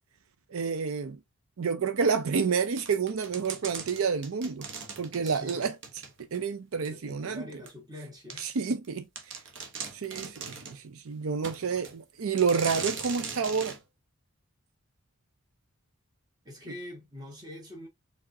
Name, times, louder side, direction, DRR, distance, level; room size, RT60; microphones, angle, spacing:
voice 1, 0.5-1.2 1.6-4.7 5.0-5.7 6.3-7.4 8.4-9.4 9.9-13.8, right 5 dB, 70° right, 0.5 m, -29 dB
sound 1, 2.8-6.4 6.8-6.9 7.7-7.8 8.3-8.4 8.8-8.9 9.2-10.8 11.4-12.0 12.4-13.8, right 5 dB, 55° right, 1.1 m, -39 dB
voice 2, 5.2-5.7 6.9-8.5 16.4-17.9, left 1 dB, 20° right, 1.7 m, -44 dB
4.7 x 3.5 x 2.7 m
head